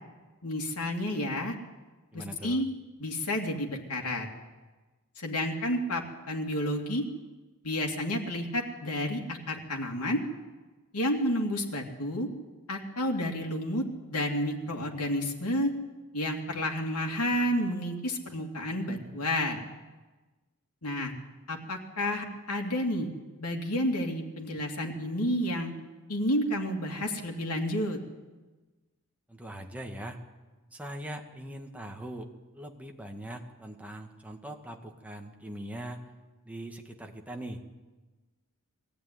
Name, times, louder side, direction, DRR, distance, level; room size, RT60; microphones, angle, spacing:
voice 1, 0.4-1.5 2.1-2.7 3.0-4.3 5.2-7.0 7.6-10.2 10.9-12.3 12.7-13.8 14.1-15.7 16.1-19.6 20.8-21.1 21.5-23.1 23.4-25.7 26.1-28.0, left 1 dB, 85° left, 1 dB, 2.9 m, -30 dB
voice 2, 2.1-2.6 29.3-30.2 30.7-32.3 32.5-36.0 36.4-37.6, right 1 dB, 5° right, 2 dB, 1.8 m, -41 dB
21.5 x 14.5 x 9.6 m, 1.2 s
head